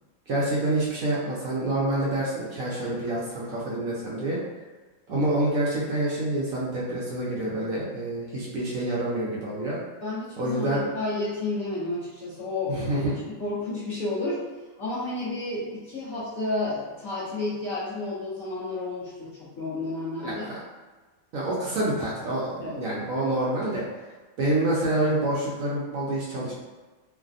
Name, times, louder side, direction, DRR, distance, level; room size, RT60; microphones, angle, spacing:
voice 1, 0.3-4.4 5.1-9.8 10.4-10.9 12.7-13.1 20.2-20.6 21.3-23.9 24.4-26.5, right 1 dB, 65° right, -5 dB, 0.9 m, -27 dB
voice 2, 10.0-14.5 14.8-20.4 22.6-22.8, left 2 dB, 60° left, -11 dB, 1.1 m, -31 dB
3.2 x 2.1 x 2.5 m, 1.3 s
omnidirectional pair, 1.8 m